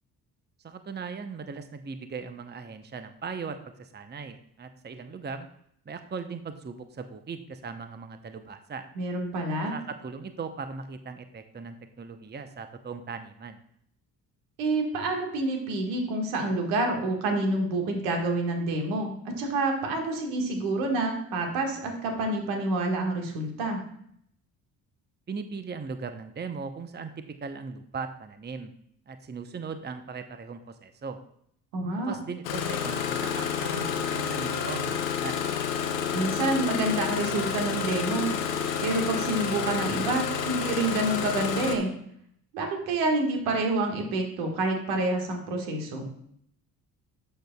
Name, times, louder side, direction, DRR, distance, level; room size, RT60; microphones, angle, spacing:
voice 1, 0.6-5.5 5.9-8.9 9.6-13.6 25.3-28.7 29.1-31.2 32.0-35.4, right 5 dB, 20° right, 8 dB, 0.8 m, -38 dB
voice 2, 9.0-9.7 14.6-23.8 31.7-32.1 36.1-38.3 38.8-41.9 42.5-46.1, right 2 dB, 75° right, 2 dB, 1.8 m, -28 dB
Engine starting, 32.4-41.8, left 7 dB, 85° left, 0.9 m, -29 dB
11.5 x 6.6 x 2.3 m, 0.68 s
hypercardioid pair, 45°, 48 cm